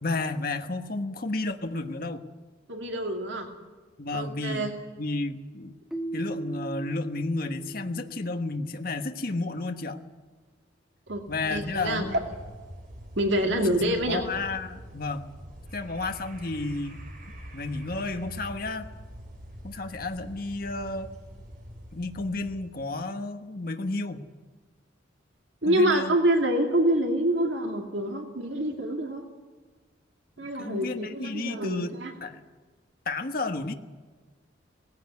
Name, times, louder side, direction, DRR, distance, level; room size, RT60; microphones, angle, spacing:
voice 1, 0.0-2.2 4.0-4.6 5.0-5.7 6.1-10.0 11.3-12.1 13.4-13.8 14.1-15.3 15.7-17.0 17.5-18.9 19.6-21.1 21.9-24.2 25.6-26.2 30.4-32.4 33.0-33.7, left 2 dB, 50° left, 6 dB, 1.3 m, -32 dB
voice 2, 2.7-3.5 4.1-4.7 11.1-11.2 11.5-12.2 13.2-14.2 25.6-29.3 30.4-32.1, right 1 dB, 75° right, 3 dB, 2.3 m, -26 dB
Keyboard (musical), 5.9-8.7, right 2 dB, ahead, 1.4 m, -38 dB
sound 1, 11.1-23.0, equal, 45° right, 4.0 m, -45 dB
18.0 x 16.0 x 9.5 m, 1.4 s
head